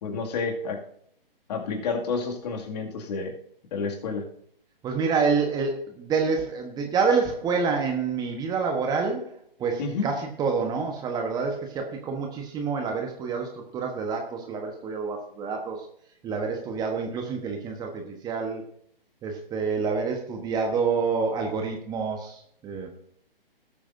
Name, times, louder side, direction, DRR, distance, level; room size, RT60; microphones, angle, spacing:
voice 1, 0.0-0.8 1.5-3.3 3.7-4.2 9.8-10.1, left 4 dB, 45° left, 2 dB, 2.3 m, -30 dB
voice 2, 4.8-9.3 9.6-15.9 16.2-18.6 19.2-22.9, right 5 dB, 15° right, 3 dB, 1.1 m, -27 dB
18.5 x 8.5 x 2.7 m, 0.67 s
hypercardioid pair, 140°, 29 cm